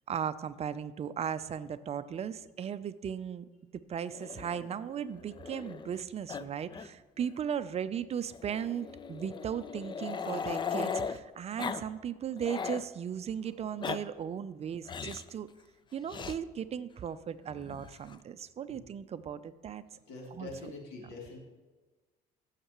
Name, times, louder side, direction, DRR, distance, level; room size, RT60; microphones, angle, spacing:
voice 1, 0.1-15.5 15.9-19.8 20.3-20.5, right 8 dB, 40° right, 14 dB, 0.5 m, -37 dB
Growling, 4.1-6.0 6.3-6.4 6.7-6.9 7.2-7.3 8.3-11.2 11.6-11.8 12.2-12.9 13.6-14.0 14.9-15.3 16.1-16.4 17.5-18.2, left 6 dB, 30° left, 0.4 m, -38 dB
voice 2, 20.1-21.4, left 3 dB, 80° left, -1 dB, 2.7 m, -44 dB
15.5 x 6.6 x 3.0 m, 1.3 s
cardioid pair, 110°, 17 cm